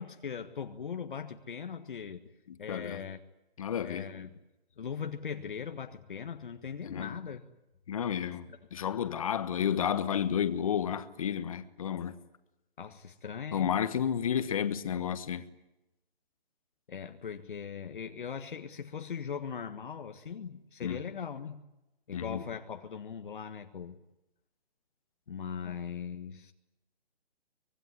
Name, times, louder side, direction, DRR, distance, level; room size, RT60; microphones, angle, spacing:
voice 1, 0.0-2.2 2.6-3.2 3.8-4.3 4.8-7.4 12.8-13.7 16.9-21.6 22.1-24.0 25.3-26.5, left 7 dB, 55° left, 1.6 m, -40 dB
voice 2, 2.5-3.0 3.6-4.1 6.8-7.2 7.9-12.2 13.5-15.4 20.8-21.0 22.1-22.4 25.6-25.8, left 8 dB, 35° left, 1.4 m, -31 dB
24.5 x 21.0 x 9.8 m
hypercardioid pair, 170°, 31 cm